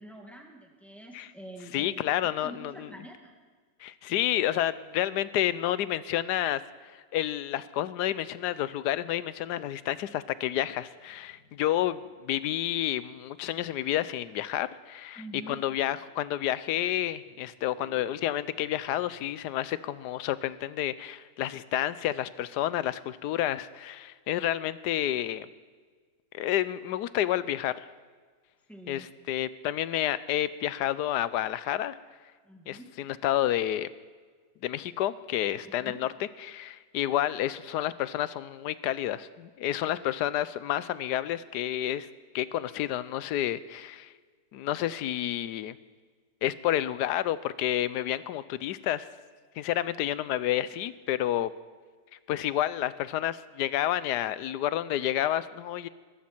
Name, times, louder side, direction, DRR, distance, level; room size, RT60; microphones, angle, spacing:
voice 1, 0.0-3.3 15.2-15.6 28.7-29.1 32.4-32.9 35.6-36.0, right 1 dB, ahead, 0 dB, 2.2 m, -46 dB
voice 2, 1.7-2.9 3.8-15.2 15.5-25.5 26.3-27.9 28.9-31.9 32.7-33.9 34.6-36.1 36.4-42.1 42.3-44.1 44.5-45.8 46.4-49.1 49.6-51.5 52.3-55.9, left 12 dB, 80° left, 16 dB, 1.2 m, -30 dB
Guitar, 10.9-14.4 16.0-16.4 16.6-19.6, left 2 dB, 25° right, 5.9 m, -59 dB
21.5 x 14.5 x 4.5 m, 1.5 s
omnidirectional pair, 1.8 m